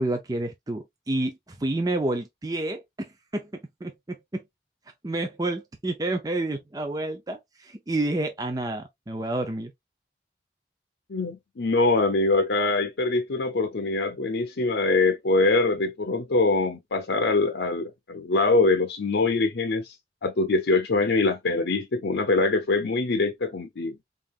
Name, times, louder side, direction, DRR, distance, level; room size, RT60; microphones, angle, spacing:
voice 1, 0.0-3.5 3.8-4.4 5.0-9.7, right 2 dB, 20° right, 0.5 m, -29 dB
voice 2, 11.1-19.9 20.2-24.0, left 3 dB, 80° left, 0.7 m, -23 dB
3.9 x 3.7 x 2.4 m
head